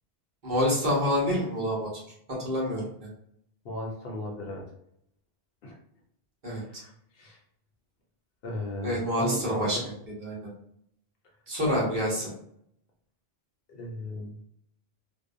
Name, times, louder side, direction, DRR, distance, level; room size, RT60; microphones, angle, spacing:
voice 1, 0.4-1.9 2.4-2.8 6.4-6.6 8.8-9.8 10.2-10.3 11.5-12.3, equal, 50° right, -5 dB, 1.1 m, -27 dB
voice 2, 3.6-4.7 5.6-5.7 6.5-6.9 7.2-7.4 8.4-9.9 13.7-14.3, left 1 dB, 70° left, 0 dB, 0.8 m, -36 dB
2.6 x 2.1 x 2.5 m, 0.73 s
omnidirectional pair, 1.0 m